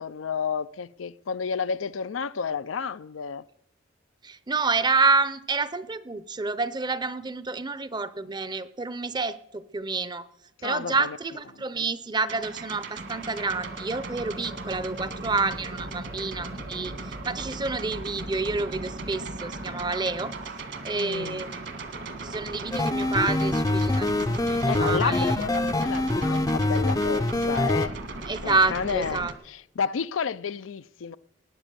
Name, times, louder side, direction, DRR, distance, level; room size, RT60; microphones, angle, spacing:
voice 1, 0.0-3.4 10.6-11.2 16.5-17.0 20.9-21.4 24.7-28.0 28.4-31.2, left 6 dB, 90° left, 0.5 m, -31 dB
voice 2, 4.2-10.3 10.6-20.3 20.8-21.6 22.2-24.1 24.4-25.3 28.3-29.3, right 3 dB, 20° right, 0.6 m, -28 dB
sound 1, 12.3-29.3, right 2 dB, 65° right, 1.7 m, -37 dB
sound 2, 22.7-27.9, left 2 dB, 20° left, 0.5 m, -25 dB
19.5 x 8.5 x 6.9 m
head